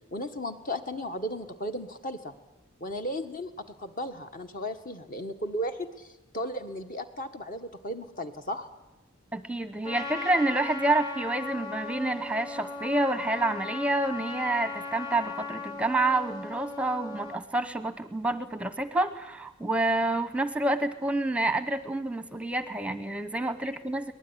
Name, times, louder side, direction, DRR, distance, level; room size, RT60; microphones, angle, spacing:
voice 1, 0.1-2.3 2.8-8.7, equal, 40° left, 7 dB, 1.7 m, -35 dB
voice 2, 9.3-24.1, right 2 dB, 5° right, 11 dB, 0.9 m, -28 dB
Trumpet, 9.8-17.4, left 3 dB, 20° left, 1.7 m, -38 dB
23.0 x 19.5 x 10.0 m, 0.96 s
head